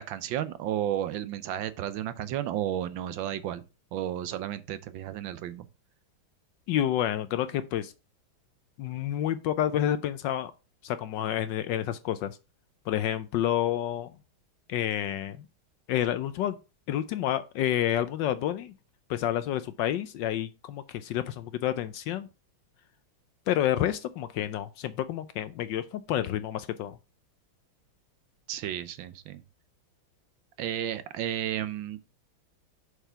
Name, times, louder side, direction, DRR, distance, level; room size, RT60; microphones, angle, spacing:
voice 1, 0.0-3.6 3.9-5.7 28.5-29.4 30.6-32.0, right 11 dB, 75° right, 1.3 m, -32 dB
voice 2, 6.7-7.9 8.8-10.5 10.8-12.4 12.9-14.1 14.7-15.4 15.9-16.6 16.9-18.7 19.1-22.3 23.5-27.0, left 11 dB, 75° left, 1.1 m, -29 dB
6.8 x 4.6 x 5.6 m
omnidirectional pair, 2.2 m